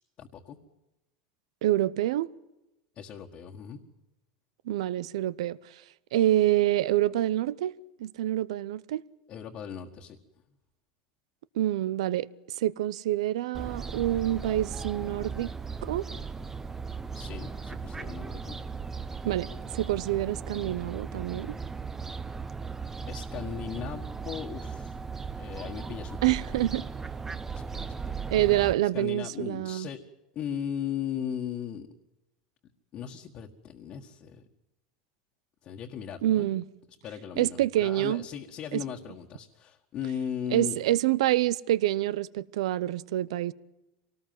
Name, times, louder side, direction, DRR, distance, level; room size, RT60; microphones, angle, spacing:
voice 1, 0.2-0.6 2.9-3.8 9.3-10.2 17.1-18.6 23.1-24.9 25.3-26.2 26.5-26.7 27.5-28.2 28.9-30.0 30.3-31.9 32.9-34.4 35.6-36.5 37.0-40.8, left 8 dB, 35° left, 1.7 m, -37 dB
voice 2, 1.6-2.3 4.7-5.6 6.1-7.7 8.0-9.0 11.6-12.3 12.6-15.5 15.8-16.0 19.2-19.5 19.7-21.6 26.2-26.8 28.3-29.9 36.2-36.6 37.4-38.2 38.7-38.8 40.5-43.5, right 14 dB, 85° right, 0.8 m, -26 dB
Fowl, 13.5-28.7, right 5 dB, 10° right, 0.9 m, -37 dB
25.0 x 19.0 x 7.7 m
supercardioid pair, 145°, 3 cm